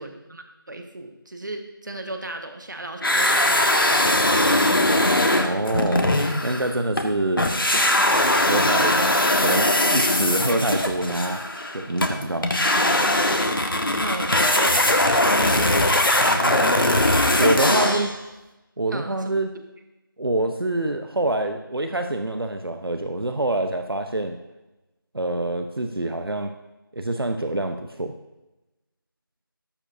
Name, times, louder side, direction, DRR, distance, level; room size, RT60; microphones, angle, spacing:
voice 1, 0.0-3.7 4.0-4.3 14.0-15.3 17.6-18.0 18.9-19.3, right 2 dB, 55° right, 5 dB, 1.5 m, -34 dB
sound 1, 3.0-7.1 7.4-18.2, left 1 dB, 70° left, 1.5 m, -20 dB
voice 2, 5.4-6.1 6.4-7.5 8.1-9.1 9.4-11.4 11.7-12.5 16.1-16.9 17.4-18.1 18.8-19.5 20.2-24.4 25.1-26.5 26.9-28.1, right 1 dB, 90° right, 6 dB, 0.9 m, -26 dB
19.0 x 7.3 x 2.7 m, 1.0 s
figure-of-eight pair, 175°, 12 cm